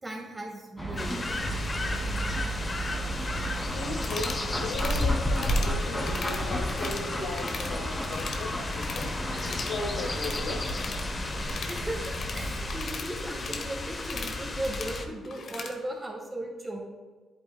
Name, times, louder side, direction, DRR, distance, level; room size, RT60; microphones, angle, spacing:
voice 1, 0.0-1.4 11.7-16.8, right 1 dB, 20° right, -2 dB, 2.6 m, -37 dB
sound 1, 0.8-12.8, right 1 dB, 10° left, 2.6 m, -33 dB
sound 2, 1.0-15.0, left 3 dB, 35° left, 1.0 m, -34 dB
voice 2, 3.7-9.1 9.7-10.6 12.4-12.5, left 2 dB, 85° left, 1 dB, 1.6 m, -37 dB
sound 3, 4.0-4.4 4.7-5.1 5.4-5.7 6.0-7.1 7.3-7.7 8.0-9.1 9.4-15.8, left 5 dB, 60° left, 1.1 m, -39 dB
10.5 x 8.8 x 2.3 m, 1.4 s
cardioid pair, 75°, 0 cm